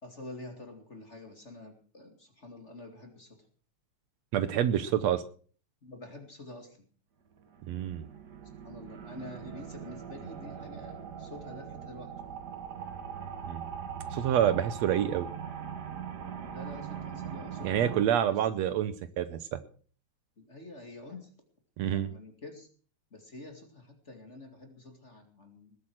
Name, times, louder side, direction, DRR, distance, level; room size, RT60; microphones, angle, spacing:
voice 1, 0.0-3.4 5.8-6.9 8.4-12.1 16.5-18.8 20.4-21.3 21.9-22.7 23.1-25.8, left 2 dB, 25° left, 5 dB, 2.3 m, -47 dB
voice 2, 4.3-5.2 7.7-8.1 13.5-13.7 14.1-15.3 17.6-19.4 21.8-22.1, right 10 dB, 70° right, 12 dB, 2.0 m, -27 dB
sound 1, 7.4-18.0, right 7 dB, 50° right, 1.4 m, -41 dB
19.5 x 8.3 x 6.2 m, 0.43 s
omnidirectional pair, 3.3 m